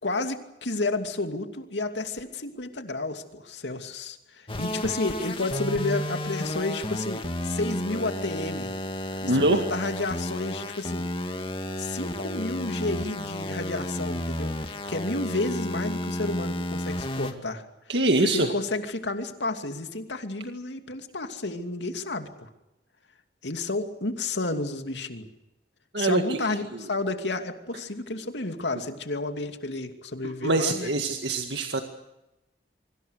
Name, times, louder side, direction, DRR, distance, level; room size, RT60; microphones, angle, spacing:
voice 1, 0.0-8.7 9.2-11.1 11.8-17.7 18.2-22.5 23.4-25.3 26.0-30.9, left 2 dB, 85° left, 6 dB, 2.7 m, -31 dB
sound 1, 4.5-17.3, left 1 dB, 30° left, 2.3 m, -32 dB
voice 2, 9.3-9.6 17.9-18.5 25.9-26.8 30.2-31.8, right 2 dB, 75° right, 5 dB, 2.0 m, -24 dB
25.5 x 24.5 x 6.6 m, 0.93 s
head